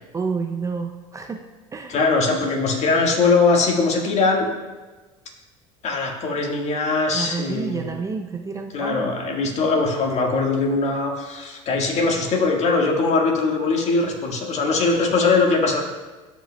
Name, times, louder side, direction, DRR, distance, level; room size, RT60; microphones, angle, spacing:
voice 1, 0.1-1.4 1.7-2.0 7.1-9.2, right 5 dB, 20° right, 4 dB, 0.5 m, -29 dB
voice 2, 1.9-4.5 5.8-8.0 8.7-15.8, left 3 dB, 45° left, 1 dB, 1.7 m, -21 dB
14.0 x 5.0 x 2.3 m, 1.2 s
hypercardioid pair, 80°, 16 cm